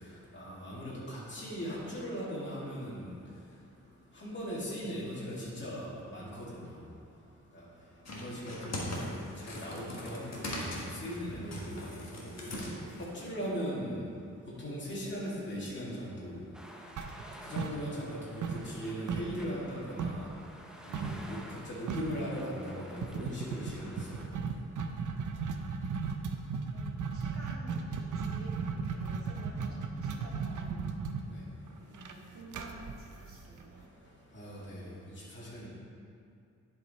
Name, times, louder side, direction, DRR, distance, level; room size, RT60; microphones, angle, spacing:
voice 1, 0.3-3.1 4.2-6.6 7.5-7.6 8.1-12.3 13.1-14.0 14.6-16.4 17.4-20.3 20.8-24.3 31.3-31.4 34.3-34.9 35.3-35.7, equal, 40° left, -7 dB, 2.0 m, -39 dB
sound 1, 8.1-13.2, left 1 dB, 55° left, 1.4 m, -40 dB
voice 2, 8.2-8.9 26.7-30.9 31.8-34.0, right 1 dB, 45° right, -6 dB, 2.0 m, -52 dB
sound 2, 16.5-24.3, equal, ahead, 0.6 m, -51 dB
sound 3, 17.0-18.2 18.4-20.3 20.9-21.2 21.5-21.6 21.9-22.2 23.0-33.8, right 5 dB, 75° right, 0.6 m, -36 dB
10.5 x 4.8 x 4.1 m, 2.4 s
wide cardioid pair, 120°, 31 cm